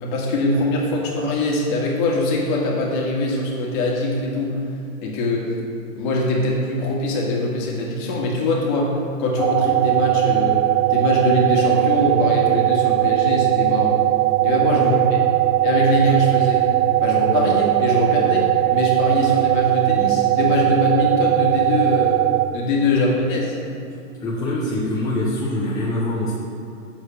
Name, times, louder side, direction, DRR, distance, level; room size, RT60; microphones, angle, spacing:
voice 1, 0.0-4.6 5.0-5.5 5.9-10.6 10.9-14.0 14.4-15.2 15.6-16.7 17.0-22.2 22.5-23.5, left 2 dB, 35° left, -3 dB, 1.9 m, -22 dB
sound 1, 9.4-22.5, right 16 dB, 60° right, 0.6 m, -19 dB
voice 2, 24.2-26.3, left 1 dB, 10° left, -7 dB, 0.8 m, -24 dB
7.1 x 4.5 x 6.3 m, 2.6 s
hypercardioid pair, 135°, 41 cm